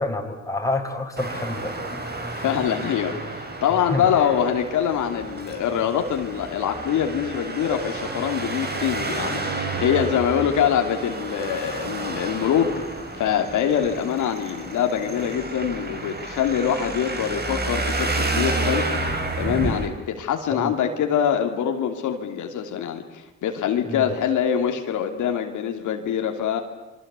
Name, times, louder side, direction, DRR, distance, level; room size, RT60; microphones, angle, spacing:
voice 1, 0.0-2.0 3.9-4.1 20.5-20.8 23.9-24.1, left 2 dB, 10° left, 3 dB, 4.6 m, -28 dB
Traffic noise roadway noise, 1.2-19.9, right 2 dB, 35° right, 5.2 m, -30 dB
voice 2, 2.3-12.8 13.2-26.6, left 8 dB, 80° left, 4 dB, 2.9 m, -24 dB
27.5 x 24.0 x 8.3 m, 0.99 s
cardioid pair, 90°, 30 cm